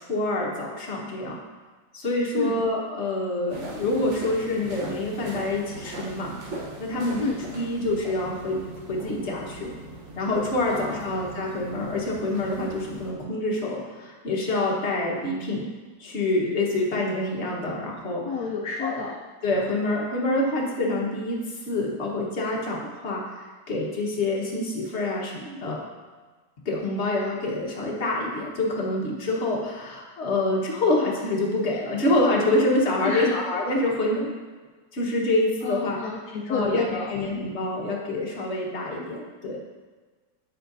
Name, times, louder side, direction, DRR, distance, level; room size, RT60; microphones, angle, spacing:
voice 1, 0.0-1.4 1.9-6.3 6.8-7.2 7.5-8.6 8.9-9.7 10.2-15.7 16.0-18.5 18.8-19.0 19.4-21.4 21.7-23.3 23.7-25.8 26.6-34.3 34.9-36.0 36.5-39.6, left 2 dB, 40° left, -2 dB, 1.4 m, -26 dB
sound 1, 3.5-13.1, right 2 dB, 45° right, 1.2 m, -40 dB
voice 2, 10.7-11.2 18.2-19.2 33.0-33.3 35.6-37.1, left 4 dB, 65° left, -1 dB, 1.1 m, -30 dB
8.6 x 7.7 x 2.6 m, 1.4 s
omnidirectional pair, 1.9 m